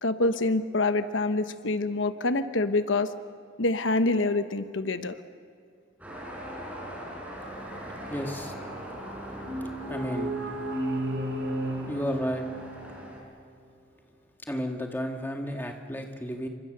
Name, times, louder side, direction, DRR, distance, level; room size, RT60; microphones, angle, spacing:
voice 1, 0.0-3.1 3.6-5.2, left 2 dB, 80° left, 10 dB, 1.1 m, -26 dB
sound 1, 6.0-13.2, equal, 5° right, 5.7 m, -41 dB
voice 2, 8.1-8.5 9.9-10.3 11.8-12.5 14.4-16.5, equal, 10° left, 3 dB, 1.9 m, -32 dB
sound 2, 9.4-13.2, right 1 dB, 80° right, 3.1 m, -33 dB
28.0 x 25.5 x 6.7 m, 2.3 s
head